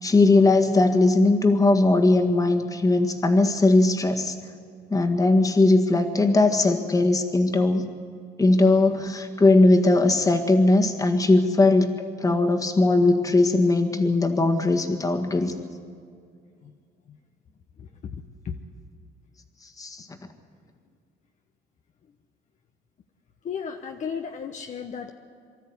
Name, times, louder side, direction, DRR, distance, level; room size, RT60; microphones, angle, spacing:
voice 1, 0.0-4.4 4.9-7.8 8.4-15.5 19.8-20.1, left 2 dB, 20° left, 5 dB, 1.8 m, -19 dB
voice 2, 17.8-18.6 23.4-25.1, left 6 dB, 45° left, 4 dB, 1.0 m, -35 dB
24.5 x 13.0 x 9.6 m, 2.2 s
cardioid pair, 110°, 17 cm